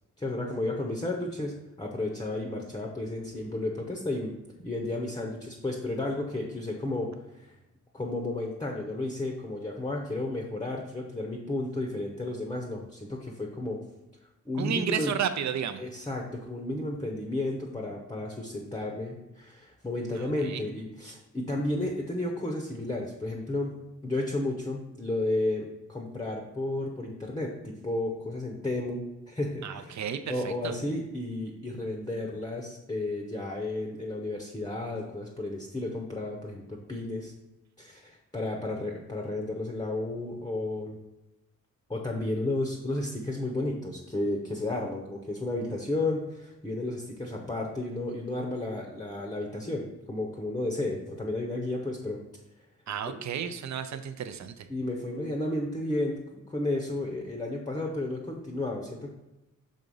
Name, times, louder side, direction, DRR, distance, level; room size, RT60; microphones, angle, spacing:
voice 1, 0.2-4.3 4.6-7.1 7.4-7.5 7.9-13.8 14.5-15.1 15.8-23.8 24.0-37.3 37.8-41.0 41.9-52.2 53.0-53.2 54.7-56.2 56.5-59.1, left 2 dB, 15° left, 1 dB, 0.7 m, -32 dB
voice 2, 14.5-15.8 20.1-20.6 29.6-30.7 52.9-54.7, right 8 dB, 60° right, 10 dB, 0.5 m, -32 dB
6.2 x 3.9 x 5.4 m, 0.97 s
wide cardioid pair, 160°, 32 cm